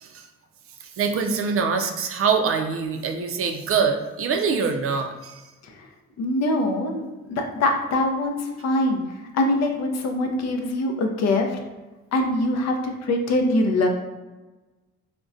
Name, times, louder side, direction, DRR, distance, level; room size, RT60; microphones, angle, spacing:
voice 1, 0.8-5.4, right 5 dB, 50° right, 5 dB, 0.4 m, -24 dB
voice 2, 6.2-9.0 9.3-11.6 12.1-13.9, left 1 dB, 60° left, 3 dB, 0.5 m, -23 dB
3.7 x 2.2 x 2.5 m, 1.2 s
cardioid pair, 90°, 30 cm